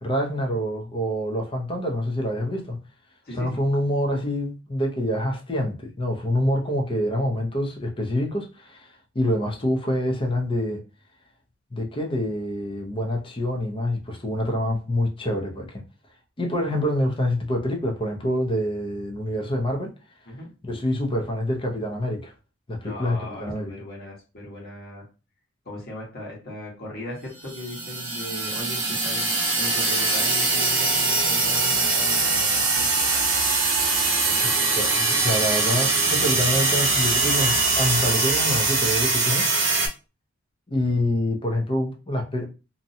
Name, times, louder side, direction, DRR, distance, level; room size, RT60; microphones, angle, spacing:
voice 1, 0.0-2.8 3.4-10.8 11.7-15.8 16.4-19.9 20.6-22.3 22.7-23.7 34.4-39.5 40.7-42.5, left 1 dB, 25° left, 0.6 m, -26 dB
voice 2, 22.8-25.0 25.6-33.3, left 1 dB, 50° left, 1.3 m, -38 dB
sound 1, 27.4-39.9, right 3 dB, 65° right, 0.8 m, -22 dB
2.6 x 2.2 x 2.6 m
head